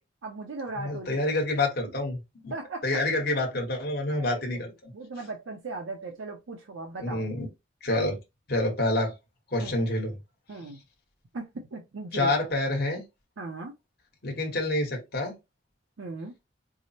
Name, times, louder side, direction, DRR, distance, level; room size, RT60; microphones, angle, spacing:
voice 1, 0.2-1.4 2.5-2.9 4.1-4.7 4.9-7.3 9.6-9.8 10.5-10.8 11.3-12.3 13.4-13.7 16.0-16.3, right 3 dB, 85° right, 0.6 m, -38 dB
voice 2, 0.8-2.2 2.4-2.5 2.8-4.7 7.0-7.5 7.8-8.2 8.5-9.1 9.5-10.1 12.1-13.0 14.2-15.3, left 2 dB, 55° left, 1.2 m, -27 dB
4.6 x 2.0 x 2.8 m
head